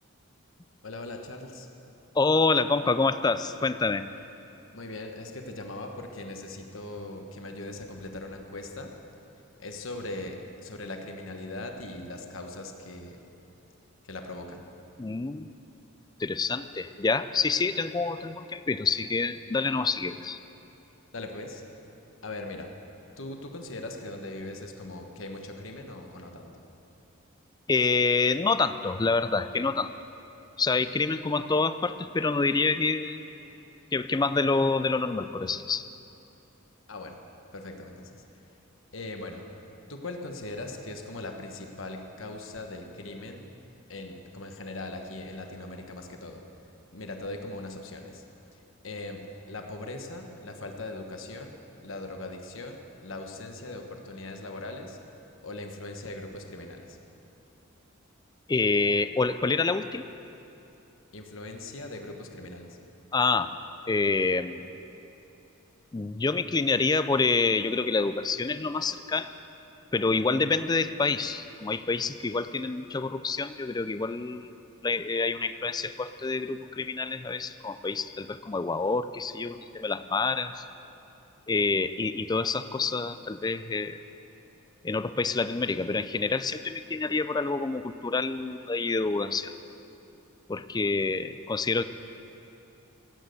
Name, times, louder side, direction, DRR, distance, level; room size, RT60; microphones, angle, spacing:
voice 1, 0.8-1.7 4.7-8.9 9.6-13.2 14.0-14.6 21.1-21.6 22.2-22.7 23.2-26.6 36.9-37.2 37.5-38.1 38.9-39.4 39.9-43.5 43.9-46.4 46.9-48.2 48.5-51.5 51.8-55.0 55.4-57.0 61.1-62.8, left 2 dB, 70° left, 4 dB, 1.3 m, -40 dB
voice 2, 2.1-4.1 15.0-15.5 16.2-20.4 27.7-29.9 30.6-33.2 33.9-35.9 58.5-60.1 63.1-63.5 63.9-64.6 65.9-69.3 69.9-74.5 74.8-80.6 81.5-84.0 84.8-89.5 90.5-91.8, left 4 dB, 20° left, 12 dB, 0.4 m, -27 dB
15.5 x 9.2 x 7.9 m, 2.8 s
head